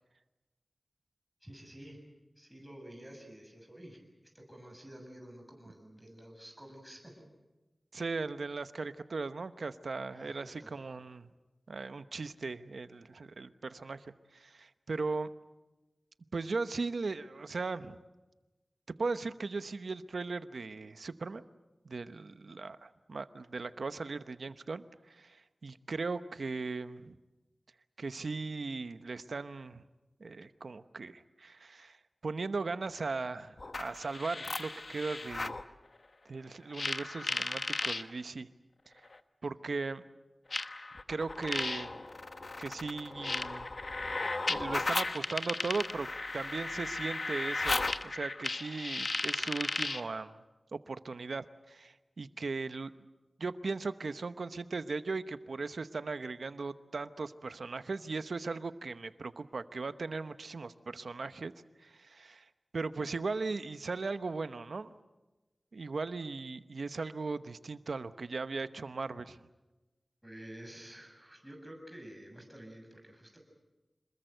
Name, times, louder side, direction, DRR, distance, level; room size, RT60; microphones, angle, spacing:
voice 1, 1.4-2.0 2.4-4.0 4.3-7.2 8.0-8.1 10.1-10.7 70.2-73.4, right 1 dB, 5° right, 2 dB, 7.2 m, -50 dB
voice 2, 7.9-11.3 11.7-15.3 16.3-18.0 19.0-21.4 21.8-27.2 28.0-29.8 30.2-32.0 32.2-35.6 36.3-38.5 39.4-40.0 41.1-42.0 42.6-43.7 44.2-46.1 46.3-50.4 50.7-52.9 53.4-61.5 61.8-62.4 62.7-65.0 65.7-69.4, right 4 dB, 85° right, 12 dB, 0.9 m, -38 dB
sound 1, 33.6-35.6 36.7-38.0 39.1-39.2 40.5-50.1, left 3 dB, 60° left, 1.1 m, -35 dB
27.0 x 21.0 x 8.0 m, 1.1 s
wide cardioid pair, 60°, 0 cm